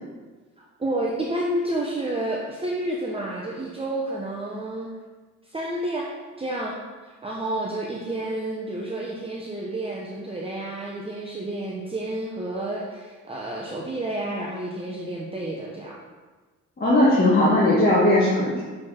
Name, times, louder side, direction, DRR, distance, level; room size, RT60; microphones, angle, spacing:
voice 1, 0.6-4.9 5.5-6.1 6.4-6.8 7.2-16.0, right 1 dB, 20° right, -3 dB, 0.8 m, -30 dB
voice 2, 16.8-18.6, left 1 dB, 30° left, -8 dB, 1.6 m, -18 dB
6.3 x 4.3 x 4.3 m, 1.3 s
cardioid pair, 90°, 30 cm